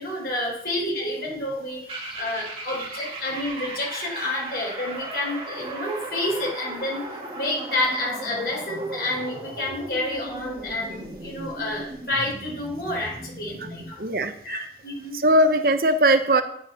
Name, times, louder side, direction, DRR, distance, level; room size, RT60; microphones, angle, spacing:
voice 1, 0.0-7.1 7.3-14.0 14.4-15.2, left 1 dB, 65° left, -3 dB, 5.4 m, -29 dB
sound 1, 1.9-14.0, right 2 dB, 30° right, 2.5 m, -37 dB
voice 2, 14.0-14.3 15.1-16.4, right 1 dB, 55° right, 8 dB, 0.8 m, -19 dB
11.0 x 9.3 x 4.3 m, 0.70 s
head